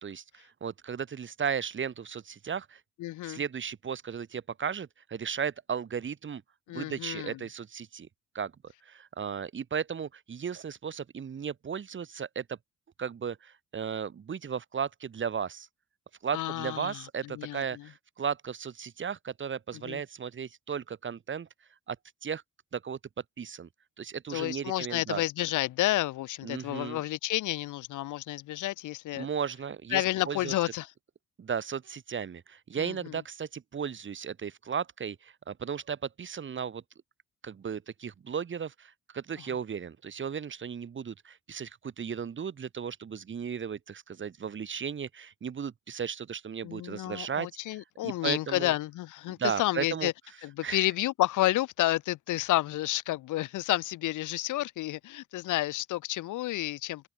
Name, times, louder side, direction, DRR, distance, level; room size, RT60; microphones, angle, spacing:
voice 1, 0.0-2.8 3.2-6.4 6.7-8.1 8.3-8.5 8.8-12.6 13.0-15.7 16.2-21.5 21.9-22.0 22.2-22.4 22.7-23.0 23.4-23.7 24.0-25.2 26.4-27.0 29.1-30.5 31.4-36.8 37.4-48.7 49.3-50.1 50.6-50.9, right 7 dB, 40° right, 1.5 m, -35 dB
voice 2, 3.0-3.4 6.7-7.4 16.3-17.0 17.3-17.8 19.8-20.0 24.3-29.3 29.9-30.9 32.8-33.2 46.6-50.1 50.4-57.1, left 16 dB, 80° left, 0.9 m, -30 dB
cardioid pair, 90°, 30 cm